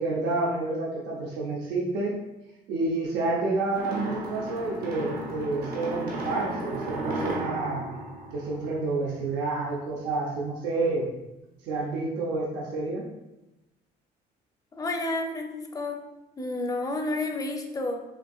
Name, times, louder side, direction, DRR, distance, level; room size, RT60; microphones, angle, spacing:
voice 1, 0.0-2.2 2.7-7.8 8.3-11.1 11.6-13.1, right 3 dB, 90° right, -3 dB, 0.7 m, -29 dB
sound 1, 3.7-9.1, right 1 dB, 65° right, 0.9 m, -34 dB
voice 2, 14.8-16.0 16.4-18.0, left 2 dB, 20° left, 3 dB, 0.6 m, -30 dB
5.6 x 2.7 x 2.4 m, 0.96 s
cardioid pair, 110°, 17 cm